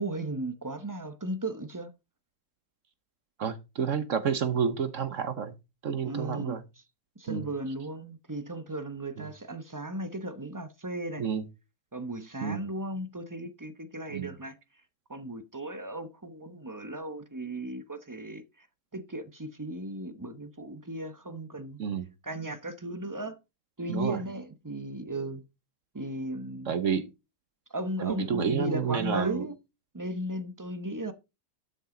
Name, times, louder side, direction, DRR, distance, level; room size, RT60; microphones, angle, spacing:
voice 1, 0.0-1.9 6.0-6.6 7.2-11.3 11.9-14.6 15.1-18.7 18.9-21.8 22.2-23.4 23.8-25.4 25.9-26.8 27.7-29.5 29.9-31.1, right 1 dB, 20° right, 0.5 m, -36 dB
voice 2, 3.4-5.5 5.8-6.6 7.3-7.5 9.2-9.3 11.2-11.4 12.4-12.6 14.1-14.3 21.8-22.1 23.9-24.2 26.7-27.1 28.0-29.5, right 7 dB, 55° right, 1.1 m, -29 dB
12.0 x 6.2 x 3.8 m
omnidirectional pair, 1.8 m